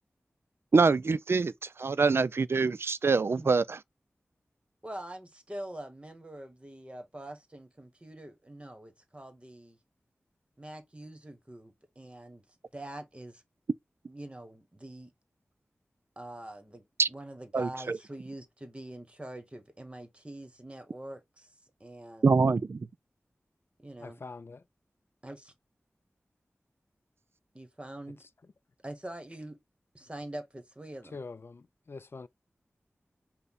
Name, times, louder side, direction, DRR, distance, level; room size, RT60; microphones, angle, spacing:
voice 1, 0.7-3.8 17.0-17.1 17.5-18.0 22.2-22.8, right 4 dB, 60° right, 0.4 m, -25 dB
voice 2, 4.8-9.8 10.6-12.4 12.7-13.4 14.1-15.1 16.2-21.5 21.8-22.4 23.8-24.2 25.2-25.5 27.5-28.2 28.8-29.6 29.9-31.2, right 1 dB, 25° right, 1.3 m, -44 dB
voice 3, 24.0-24.6 28.2-28.3 31.1-32.3, left 4 dB, 55° left, 0.3 m, -44 dB
5.4 x 2.2 x 4.1 m
wide cardioid pair, 70°, 5 cm